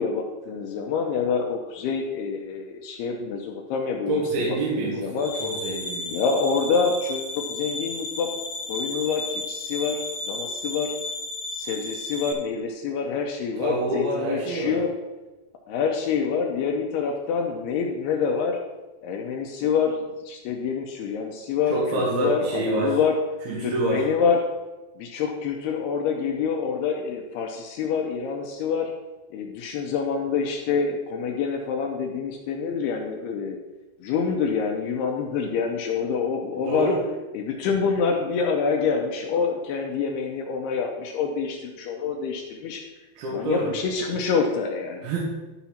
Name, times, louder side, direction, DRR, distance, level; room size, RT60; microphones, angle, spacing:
voice 1, 0.0-4.1 4.4-5.3 6.1-8.3 8.7-10.9 11.5-14.9 15.7-18.6 19.0-20.0 20.3-23.2 23.6-24.4 25.0-28.9 29.3-33.6 34.0-36.9 37.3-42.8 43.3-45.1, left 5 dB, 80° left, 2 dB, 2.4 m, -26 dB
voice 2, 4.1-6.2 13.6-14.8 21.7-23.0 23.5-24.0 36.7-37.0 43.2-43.7 45.0-45.2, right 2 dB, 65° right, -5 dB, 3.2 m, -26 dB
sound 1, 5.2-12.3, left 2 dB, 60° left, 2.8 m, -33 dB
12.0 x 4.4 x 5.7 m, 1.2 s
omnidirectional pair, 5.2 m